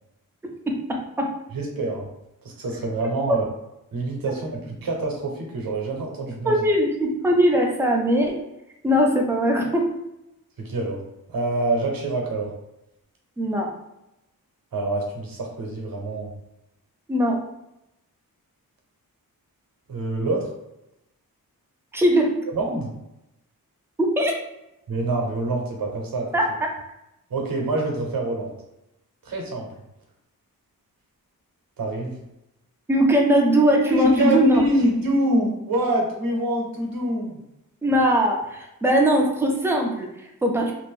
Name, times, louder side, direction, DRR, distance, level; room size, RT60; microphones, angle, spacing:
voice 1, 0.4-1.3 3.3-3.4 6.4-8.4 8.8-9.9 13.4-13.7 17.1-17.4 21.9-22.4 24.0-24.4 26.3-26.7 32.9-34.6 37.8-40.7, equal, 5° right, 0 dB, 0.4 m, -20 dB
voice 2, 1.5-2.1 2.4-3.4 3.9-6.5 10.6-11.0 11.3-12.5 14.7-16.3 19.9-20.5 22.5-22.9 24.9-26.3 27.3-28.5 29.2-29.7 31.8-32.2 33.9-37.4, right 1 dB, 70° right, 1 dB, 0.8 m, -26 dB
2.6 x 2.5 x 3.5 m, 0.88 s
wide cardioid pair, 175°, 36 cm